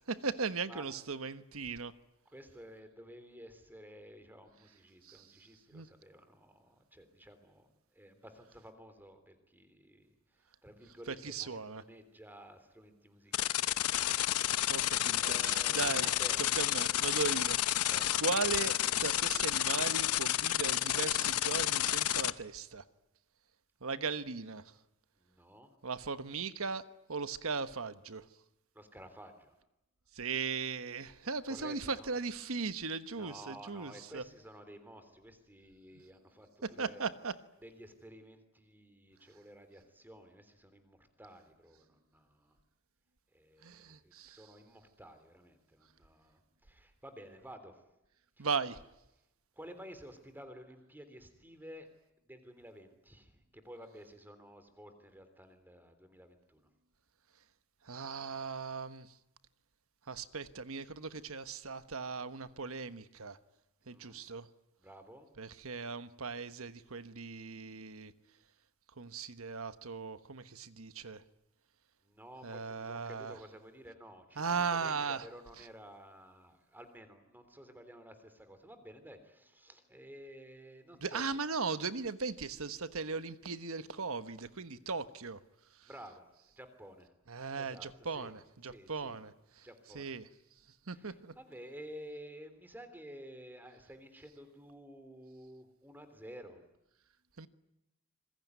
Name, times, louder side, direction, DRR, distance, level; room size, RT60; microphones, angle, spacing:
voice 1, 0.1-1.9 5.0-5.3 5.7-5.9 11.1-11.8 14.7-16.1 16.6-17.8 18.2-22.8 23.8-24.7 25.8-28.3 30.1-34.2 36.6-37.4 43.6-44.4 48.4-48.8 57.8-59.1 60.1-63.4 63.9-64.5 65.4-68.1 69.0-71.2 72.4-73.4 74.4-75.3 75.6-75.7 81.0-85.4 85.8-85.9 87.3-89.7 89.9-90.3 90.9-91.3 97.4-97.5, right 4 dB, 65° right, 1.3 m, -38 dB
voice 2, 0.7-1.0 2.3-13.8 14.6-16.4 17.9-18.1 24.0-24.1 25.2-25.8 28.8-29.6 31.3-32.1 33.2-37.1 37.6-42.6 43.3-47.8 48.4-48.5 49.6-51.9 52.2-56.7 63.8-64.2 64.8-65.3 72.0-81.2 85.9-86.3 86.6-87.1 87.5-88.3 88.7-89.2 89.6-90.1 90.9-96.6, equal, 10° right, 3.4 m, -53 dB
sound 1, 13.3-22.3, left 12 dB, 85° left, 0.9 m, -30 dB
26.5 x 21.5 x 9.5 m
head